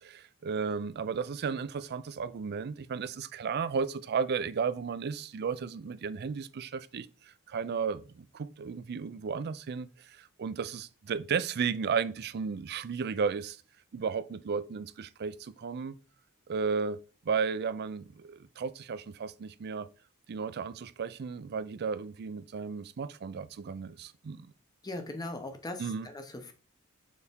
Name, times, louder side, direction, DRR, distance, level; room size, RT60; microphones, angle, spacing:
voice 1, 0.0-7.1 7.5-13.6 13.9-15.9 16.5-17.0 17.3-19.9 20.3-24.5 25.8-26.1, right 5 dB, 50° right, 0.4 m, -34 dB
voice 2, 24.8-26.5, left 2 dB, 20° left, 0.8 m, -39 dB
6.8 x 4.1 x 3.5 m
head